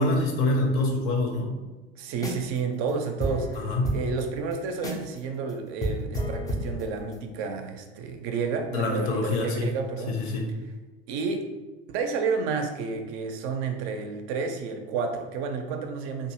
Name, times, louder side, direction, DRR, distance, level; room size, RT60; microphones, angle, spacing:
voice 1, 0.0-1.5 3.5-3.9 8.7-9.7 10.1-10.5, left 2 dB, 45° left, 1 dB, 0.7 m, -25 dB
voice 2, 2.0-3.6 3.9-10.2 11.1-11.5 11.9-16.3, right 5 dB, 45° right, 5 dB, 0.5 m, -30 dB
sound 1, 2.1-2.6 2.9-3.0 3.2-5.2 5.5-5.6 5.8-7.3, equal, 10° left, 0.4 m, -31 dB
2.6 x 2.4 x 2.8 m, 1.2 s
figure-of-eight pair, 75°, 31 cm